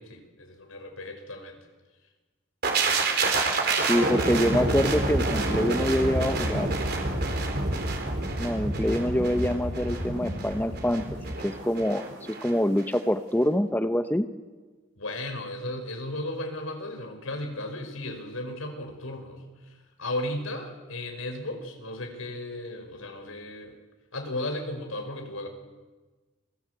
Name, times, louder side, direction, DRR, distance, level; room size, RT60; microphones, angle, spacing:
voice 1, 0.0-1.6 15.0-19.7 20.0-23.7 24.1-25.5, left 1 dB, 85° left, 4 dB, 5.5 m, -35 dB
sound 1, 2.6-12.5 12.8-13.0, right 2 dB, 50° right, 4.4 m, -28 dB
voice 2, 3.7-6.7 8.4-12.1 12.4-14.3, equal, 10° left, 9 dB, 0.9 m, -25 dB
29.0 x 24.0 x 8.3 m, 1.3 s
head